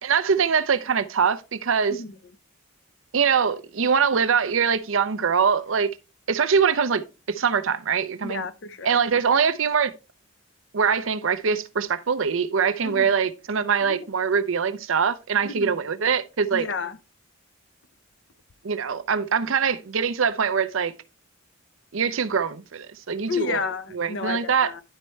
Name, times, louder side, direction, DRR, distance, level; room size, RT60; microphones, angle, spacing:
voice 1, 0.0-2.0 3.1-5.9 6.3-7.0 7.3-8.5 8.8-9.9 10.7-16.6 18.6-20.9 21.9-23.6 23.9-24.7, right 6 dB, 75° right, 0.6 m, -23 dB
voice 2, 8.2-9.0 12.8-13.2 13.8-14.0 15.4-15.8 16.5-17.0 23.3-24.8, left 4 dB, 60° left, 0.7 m, -31 dB
11.0 x 4.4 x 3.1 m
head